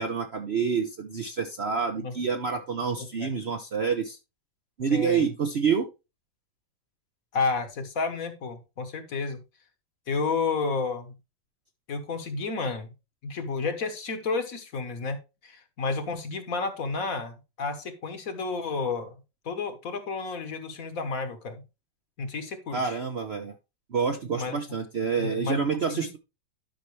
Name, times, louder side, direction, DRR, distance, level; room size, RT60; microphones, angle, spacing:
voice 1, 0.0-4.2 4.8-5.9 22.7-23.5 23.9-26.2, right 6 dB, 55° right, 6 dB, 0.7 m, -28 dB
voice 2, 4.9-5.3 7.3-9.4 10.1-11.1 11.9-12.9 13.2-19.2 19.4-21.6 22.2-23.0 24.3-24.6 25.2-26.1, left 4 dB, 55° left, 9 dB, 1.5 m, -31 dB
11.5 x 5.6 x 3.1 m, 0.26 s
omnidirectional pair, 1.9 m